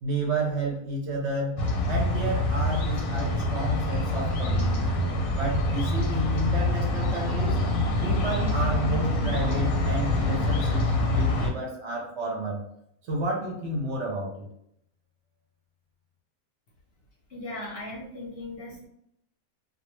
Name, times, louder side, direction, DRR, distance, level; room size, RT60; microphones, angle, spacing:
voice 1, 0.0-1.6 1.9-4.9 5.3-7.6 8.0-12.6 13.1-14.5, right 1 dB, 65° right, -2 dB, 0.8 m, -31 dB
sound 1, 1.6-11.5, left 1 dB, 90° left, 1.0 m, -25 dB
voice 2, 17.3-18.9, left 2 dB, 55° left, -4 dB, 0.7 m, -38 dB
2.3 x 2.2 x 2.9 m, 0.75 s
omnidirectional pair, 1.4 m